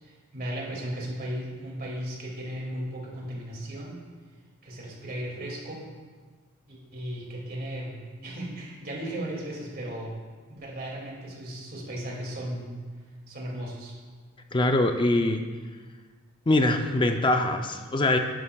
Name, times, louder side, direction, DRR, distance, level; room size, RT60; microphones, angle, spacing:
voice 1, 0.0-4.0 4.6-5.9 6.7-10.2 10.5-12.7 13.3-13.9, right 1 dB, 45° right, -2 dB, 2.4 m, -36 dB
voice 2, 14.5-15.4 16.5-18.2, left 2 dB, 20° left, 5 dB, 0.5 m, -23 dB
11.0 x 11.0 x 2.3 m, 1.5 s
head